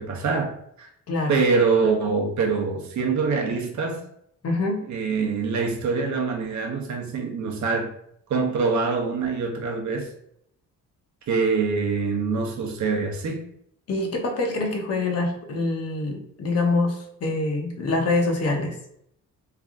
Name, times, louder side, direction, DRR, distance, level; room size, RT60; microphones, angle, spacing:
voice 1, 0.0-0.9 1.3-4.0 4.9-7.9 8.3-10.1 11.3-13.4, right 4 dB, 60° right, 2 dB, 0.7 m, -24 dB
voice 2, 1.1-1.4 4.4-4.8 13.9-18.7, left 2 dB, 50° left, 2 dB, 0.8 m, -25 dB
3.4 x 2.4 x 3.5 m, 0.72 s
wide cardioid pair, 170°, 32 cm